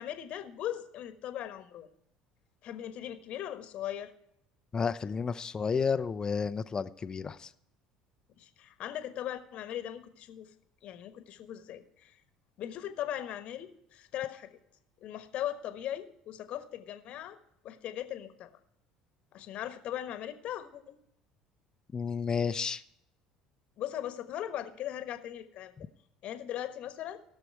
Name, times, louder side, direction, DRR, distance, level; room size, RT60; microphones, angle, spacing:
voice 1, 0.0-1.9 2.6-4.1 8.4-10.5 10.8-12.2 12.6-14.6 15.0-17.4 17.6-18.5 19.3-21.0 23.8-25.7 26.2-27.2, left 11 dB, 55° left, 1.3 m, -39 dB
voice 2, 4.7-7.5 21.9-22.8, left 5 dB, 30° left, 0.7 m, -31 dB
17.0 x 6.8 x 4.7 m
hypercardioid pair, 65°, 2 cm